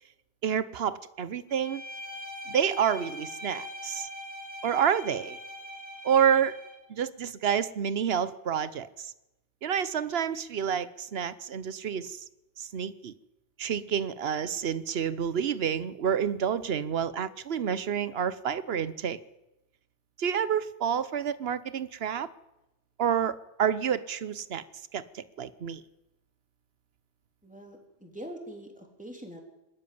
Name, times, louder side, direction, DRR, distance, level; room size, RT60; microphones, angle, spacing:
voice 1, 0.4-1.8 2.5-4.1 4.6-5.4 6.0-6.5 6.9-9.1 9.6-12.2 12.6-13.1 13.6-19.2 20.2-22.3 23.0-24.6 24.9-25.8, right 8 dB, 75° right, 16 dB, 1.1 m, -29 dB
Bowed string instrument, 1.5-6.8, left 1 dB, 15° left, 2.8 m, -42 dB
voice 2, 27.4-29.4, right 1 dB, 5° right, 2 dB, 3.5 m, -43 dB
21.5 x 13.0 x 9.5 m, 0.96 s
omnidirectional pair, 1.1 m